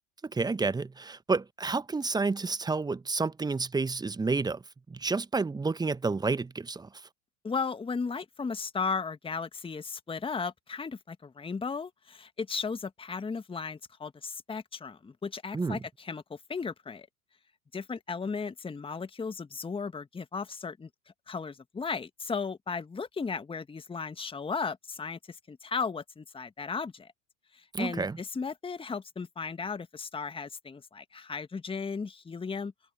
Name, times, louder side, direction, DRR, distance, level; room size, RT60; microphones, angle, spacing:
voice 1, 0.2-4.6 4.9-6.9 15.5-15.8 27.7-28.2, right 4 dB, 10° right, 1.1 m, -30 dB
voice 2, 7.4-17.1 17.7-20.9 21.3-27.1 27.5-32.7, left 5 dB, 10° left, 1.8 m, -35 dB
figure-of-eight pair, 80°, 43 cm